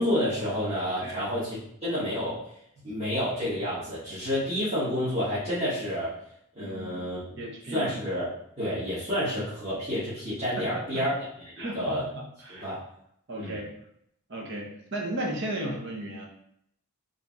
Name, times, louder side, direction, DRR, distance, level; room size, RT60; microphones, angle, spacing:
voice 1, 0.0-2.4 2.8-6.2 6.5-7.2 7.7-8.3 8.6-11.1 11.5-12.1 12.5-12.8 13.3-13.6, equal, 30° right, -13 dB, 1.5 m, -29 dB
voice 2, 6.6-7.0 7.4-7.9 10.9-11.0 11.6-12.7 13.3-13.7 14.3-16.3, right 1 dB, 55° right, -1 dB, 0.9 m, -35 dB
3.6 x 2.7 x 3.6 m, 0.72 s
head